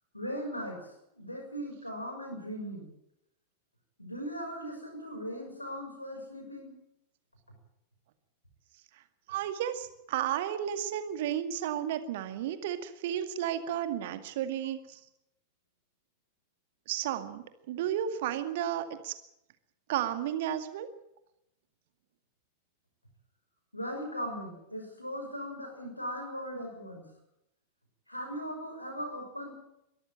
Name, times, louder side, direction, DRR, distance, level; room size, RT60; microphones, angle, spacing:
voice 1, 0.1-2.9 4.0-6.8 23.7-27.1 28.1-29.5, equal, 85° left, 4 dB, 6.1 m, -39 dB
voice 2, 9.3-15.0 16.9-19.1 19.9-20.9, right 10 dB, 55° right, 9 dB, 2.1 m, -33 dB
22.5 x 14.0 x 9.1 m, 0.83 s
figure-of-eight pair, 90°, 0 cm